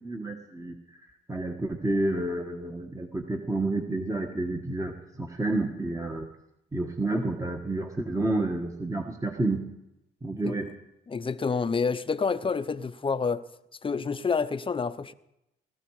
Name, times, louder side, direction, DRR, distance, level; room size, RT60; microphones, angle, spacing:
voice 1, 0.0-0.7 1.3-6.3 6.7-9.6 10.2-10.7, right 2 dB, 15° right, 1.5 m, -29 dB
voice 2, 11.1-13.4 13.8-15.1, left 5 dB, 25° left, 0.8 m, -28 dB
18.5 x 13.5 x 4.9 m
cardioid pair, 90°, 20 cm